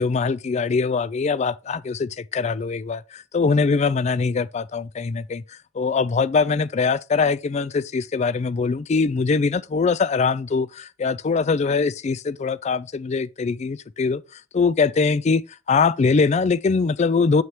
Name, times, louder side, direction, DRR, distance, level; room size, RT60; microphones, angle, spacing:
voice 1, 0.0-5.4 5.7-15.4 15.7-17.4, left 4 dB, 35° left, 0.3 m, -22 dB
7.2 x 6.3 x 3.1 m
head